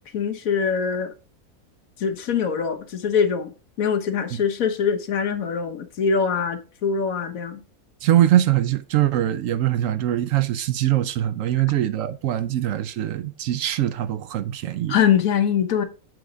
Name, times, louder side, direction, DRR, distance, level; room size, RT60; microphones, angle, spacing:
voice 1, 0.1-1.1 2.0-3.5 3.8-7.6 14.9-15.8, left 7 dB, 70° left, 1.3 m, -23 dB
voice 2, 8.0-15.0, right 12 dB, 70° right, 0.9 m, -22 dB
7.7 x 3.8 x 5.0 m
omnidirectional pair, 1.5 m